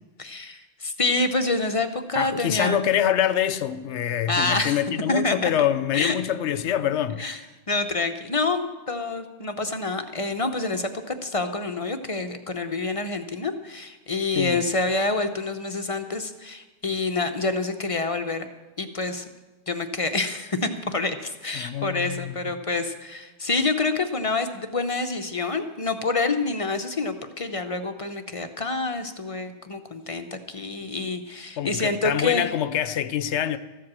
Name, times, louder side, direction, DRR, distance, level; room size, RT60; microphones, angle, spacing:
voice 1, 0.2-2.8 4.3-4.8 5.1-5.5 5.9-6.1 7.2-7.4 7.7-18.5 18.8-19.2 19.7-32.5, left 3 dB, 35° left, 0.7 m, -27 dB
voice 2, 2.1-7.2 14.3-14.6 21.5-22.5 30.8-30.9 31.6-33.6, left 10 dB, 75° left, 1.0 m, -25 dB
14.0 x 7.8 x 7.3 m
omnidirectional pair, 1.2 m